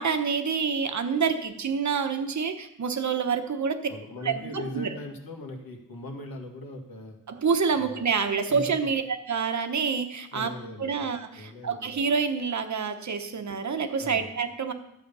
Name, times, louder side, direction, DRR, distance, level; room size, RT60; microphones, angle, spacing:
voice 1, 0.0-3.8 4.2-4.9 7.3-10.5 10.8-14.7, right 5 dB, 50° right, 7 dB, 1.1 m, -27 dB
voice 2, 3.9-7.2 7.8-8.1 8.5-9.0 10.3-11.1 11.3-12.0 14.0-14.3, left 1 dB, 75° left, 1 dB, 2.2 m, -40 dB
13.0 x 7.8 x 5.5 m, 0.80 s
wide cardioid pair, 160°, 36 cm